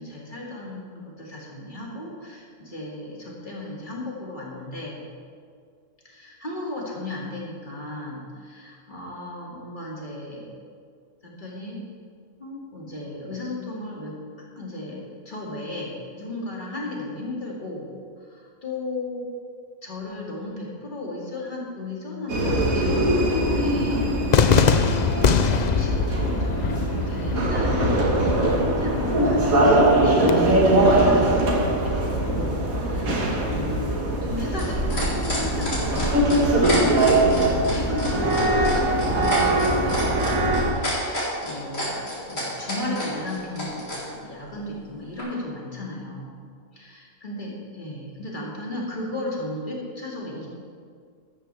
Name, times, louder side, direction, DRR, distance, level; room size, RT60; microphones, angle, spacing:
voice 1, 0.0-5.1 6.0-10.5 11.2-11.8 12.4-14.2 14.6-17.9 18.2-19.3 19.8-28.2 28.6-36.9 37.5-46.4 46.7-50.5, left 1 dB, 35° left, -4 dB, 2.5 m, -35 dB
sound 1, 22.3-40.7, right 1 dB, 80° right, 2.0 m, -22 dB
Cheering / Fireworks, 24.3-30.3, left 6 dB, 65° left, 0.4 m, -24 dB
sound 2, 33.5-44.0 45.2-45.3, left 1 dB, 85° left, 4.4 m, -30 dB
13.5 x 13.0 x 3.5 m, 2.1 s
omnidirectional pair, 1.4 m